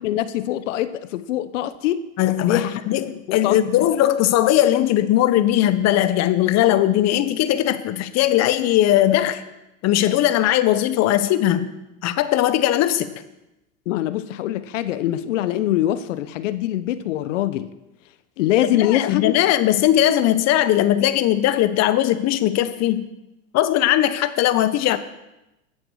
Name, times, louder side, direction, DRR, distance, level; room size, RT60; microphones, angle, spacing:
voice 1, 0.0-2.0 2.4-2.8 3.3-3.6 13.9-17.7 18.4-19.3, left 13 dB, 70° left, 14 dB, 1.0 m, -23 dB
voice 2, 2.2-9.4 9.8-11.7 12.0-13.1 18.8-23.1 23.5-25.0, left 13 dB, 40° left, 12 dB, 1.2 m, -19 dB
14.0 x 7.6 x 6.5 m, 0.94 s
hypercardioid pair, 105°, 39 cm